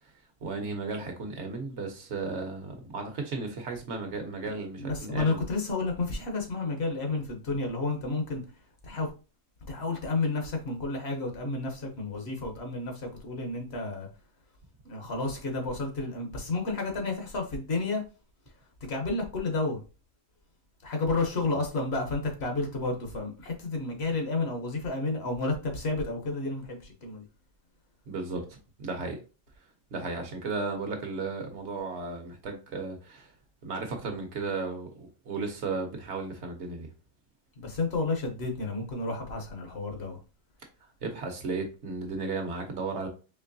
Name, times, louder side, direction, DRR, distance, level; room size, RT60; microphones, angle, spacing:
voice 1, 0.4-5.4 28.1-29.2 29.9-33.3 33.6-36.9 41.0-43.1, right 3 dB, 60° right, 1.0 m, -34 dB
voice 2, 4.8-8.4 8.8-9.1 9.7-14.1 14.8-18.0 18.9-19.8 20.8-27.2 37.6-40.2, left 3 dB, 55° left, 1.1 m, -31 dB
4.5 x 3.0 x 2.6 m
omnidirectional pair, 1.4 m